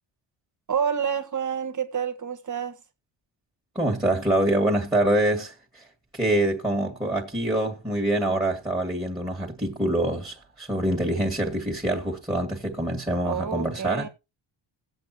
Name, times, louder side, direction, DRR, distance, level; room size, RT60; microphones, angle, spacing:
voice 1, 0.7-2.8 13.2-14.1, right 7 dB, 40° right, 1.7 m, -28 dB
voice 2, 3.8-5.8 6.1-14.1, right 1 dB, 10° right, 1.9 m, -25 dB
18.5 x 8.1 x 2.8 m
cardioid pair, 125°, 47 cm